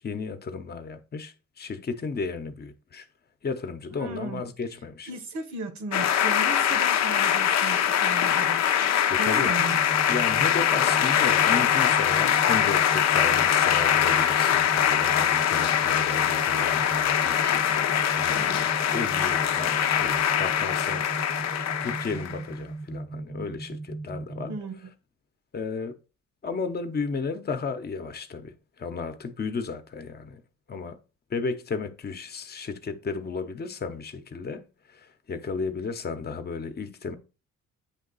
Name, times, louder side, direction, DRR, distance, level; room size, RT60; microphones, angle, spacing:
voice 1, 0.0-3.1 3.4-5.1 9.1-9.5 10.1-21.1 21.8-24.5 25.5-26.0 26.4-30.4 30.7-31.0 31.3-37.2, left 4 dB, 35° left, 0.9 m, -34 dB
voice 2, 3.9-4.5 5.0-8.6 9.2-9.8 18.3-18.7 24.4-24.9, right 3 dB, 65° right, 1.1 m, -36 dB
sound 1, 5.9-22.4, left 9 dB, 60° left, 0.6 m, -23 dB
sound 2, 9.6-24.6, right 3 dB, ahead, 0.9 m, -38 dB
8.4 x 2.9 x 4.0 m
cardioid pair, 90°, 30 cm